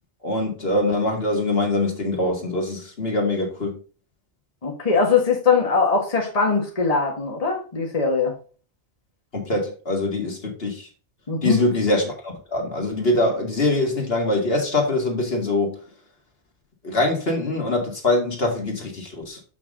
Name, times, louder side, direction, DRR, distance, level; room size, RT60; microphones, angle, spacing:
voice 1, 0.2-3.8 9.3-10.9 11.4-15.8 16.8-19.4, left 2 dB, 60° left, 2.3 m, -23 dB
voice 2, 4.6-8.3 11.3-11.6, left 4 dB, 35° left, 1.5 m, -21 dB
7.0 x 6.0 x 3.7 m
omnidirectional pair, 1.2 m